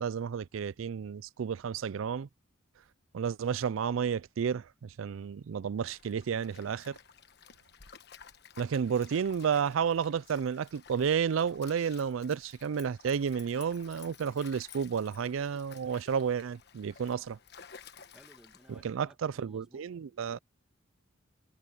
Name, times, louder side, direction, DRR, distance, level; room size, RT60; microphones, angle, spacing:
voice 1, 0.0-2.3 3.1-7.0 8.6-17.4 18.7-20.4, right 7 dB, 80° right, 0.4 m, -31 dB
Stream, 5.9-19.0, left 7 dB, 55° left, 1.3 m, -54 dB
voice 2, 18.0-20.4, equal, 5° right, 1.8 m, -59 dB
head